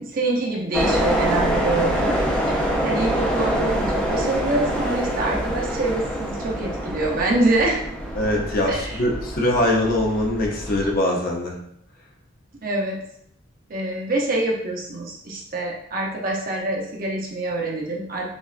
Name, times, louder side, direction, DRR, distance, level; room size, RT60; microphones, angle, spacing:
voice 1, 0.0-7.8 8.7-9.0 12.6-13.0 13.7-18.3, right 2 dB, 40° right, -1 dB, 0.6 m, -25 dB
sound 1, 0.7-10.9, equal, 5° left, 0.5 m, -25 dB
voice 2, 8.1-11.6, left 1 dB, 45° left, -1 dB, 0.6 m, -22 dB
5.1 x 2.4 x 2.4 m, 0.70 s
head